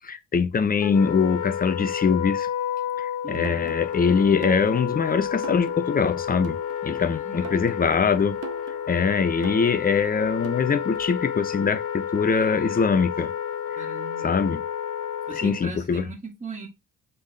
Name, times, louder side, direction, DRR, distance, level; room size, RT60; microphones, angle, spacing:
voice 1, 0.0-2.5 3.0-8.4 8.9-13.3 14.2-14.6 15.4-16.0, left 5 dB, 30° left, 0.6 m, -23 dB
Wind instrument woodwind instrument, 0.8-15.7, left 9 dB, 80° left, 0.6 m, -30 dB
voice 2, 3.2-3.7 7.0-7.5 13.7-14.3 15.3-16.7, right 4 dB, 25° right, 1.6 m, -39 dB
sound 1, 3.4-11.3, right 7 dB, 55° right, 0.9 m, -42 dB
5.4 x 3.6 x 2.7 m
cardioid pair, 90°, 30 cm